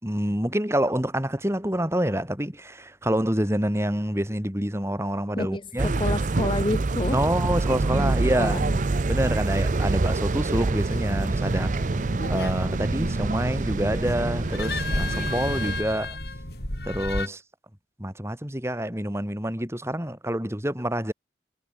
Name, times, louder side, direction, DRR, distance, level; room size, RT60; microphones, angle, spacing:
voice 1, 0.0-6.0 7.1-8.6 9.1-11.8 12.3-16.2 16.8-17.4 18.0-21.1, right 1 dB, 15° right, 3.7 m, -27 dB
voice 2, 5.4-5.7 6.0-7.2 7.9-8.8, left 1 dB, 30° left, 1.0 m, -29 dB
sound 1, 5.8-15.8, right 3 dB, 45° right, 0.6 m, -26 dB
sound 2, 10.9-17.3, left 2 dB, 65° left, 7.6 m, -33 dB
head